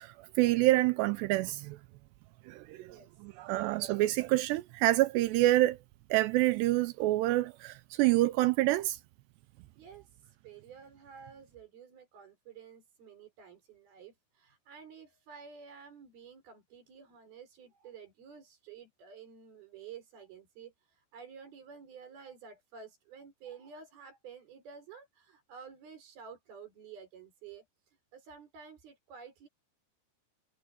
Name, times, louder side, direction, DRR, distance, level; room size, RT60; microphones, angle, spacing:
voice 1, 0.0-1.8 2.5-3.0 3.2-5.8 6.1-9.0, right 17 dB, 85° right, 2.5 m, -27 dB
voice 2, 9.8-27.6 28.1-29.5, right 6 dB, 55° right, 6.5 m, -51 dB
omnidirectional pair, 5.5 m